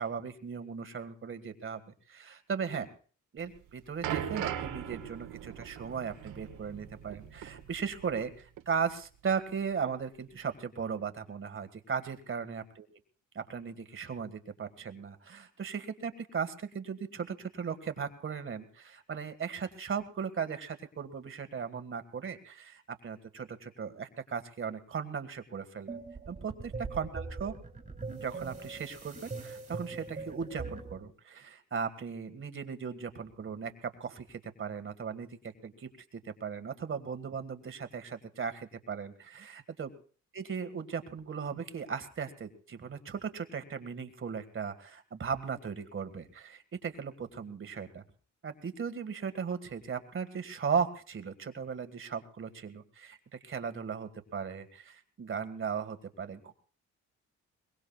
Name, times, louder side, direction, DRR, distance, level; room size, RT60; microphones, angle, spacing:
voice 1, 0.0-1.8 2.1-2.9 3.3-12.9 13.3-26.0 26.3-27.5 28.1-35.9 36.2-39.9 40.3-48.0 48.4-56.5, right 6 dB, 45° right, 8 dB, 1.9 m, -37 dB
sound 1, 3.4-8.3 8.6-8.7 9.5-9.6, right 10 dB, 85° right, 1.9 m, -39 dB
sound 2, 25.9-31.0, right 3 dB, 25° right, 2.8 m, -41 dB
23.0 x 21.5 x 2.4 m, 0.41 s
cardioid pair, 90°, 30 cm